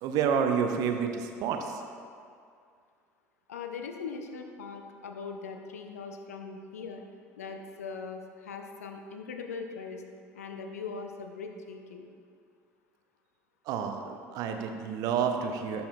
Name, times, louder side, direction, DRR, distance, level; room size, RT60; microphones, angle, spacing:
voice 1, 0.0-1.8 13.7-15.8, right 7 dB, 50° right, 5 dB, 0.5 m, -29 dB
voice 2, 3.5-7.0 7.4-10.0 10.3-12.1, left 5 dB, 75° left, 4 dB, 0.4 m, -40 dB
11.0 x 4.2 x 2.2 m, 2.2 s
figure-of-eight pair, 65°, 8 cm